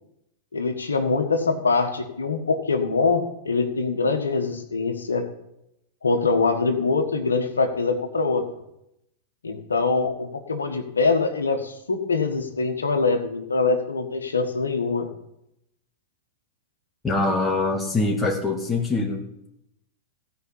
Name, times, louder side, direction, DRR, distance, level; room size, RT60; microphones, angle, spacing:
voice 1, 0.5-5.3 6.0-8.4 9.4-15.1, left 4 dB, 85° left, 6 dB, 1.5 m, -23 dB
voice 2, 17.0-19.5, left 3 dB, 15° left, -1 dB, 2.2 m, -24 dB
15.5 x 5.3 x 8.7 m, 0.82 s
hypercardioid pair, 100°, 0 cm